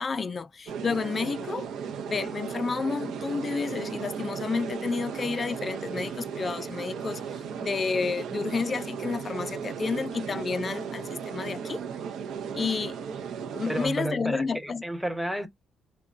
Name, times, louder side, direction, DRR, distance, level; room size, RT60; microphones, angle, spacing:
voice 1, 0.0-1.7 2.1-11.8 12.5-13.0 13.5-14.8, left 4 dB, 30° left, 0.3 m, -30 dB
sound 1, 0.7-13.9, right 7 dB, 75° right, 0.6 m, -36 dB
voice 2, 13.7-15.5, right 1 dB, ahead, 0.7 m, -32 dB
3.9 x 2.1 x 2.4 m
cardioid pair, 140°, 0 cm